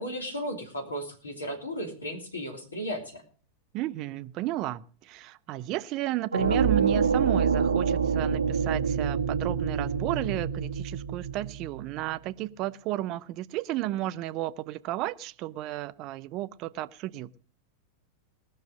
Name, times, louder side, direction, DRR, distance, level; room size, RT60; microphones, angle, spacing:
voice 1, 0.0-3.2, equal, 75° left, 3.0 m, -35 dB
voice 2, 3.7-17.3, right 15 dB, 40° right, 0.6 m, -33 dB
sound 1, 6.3-12.2, right 6 dB, 75° right, 0.8 m, -27 dB
19.0 x 6.5 x 6.4 m
figure-of-eight pair, 90°, 0 cm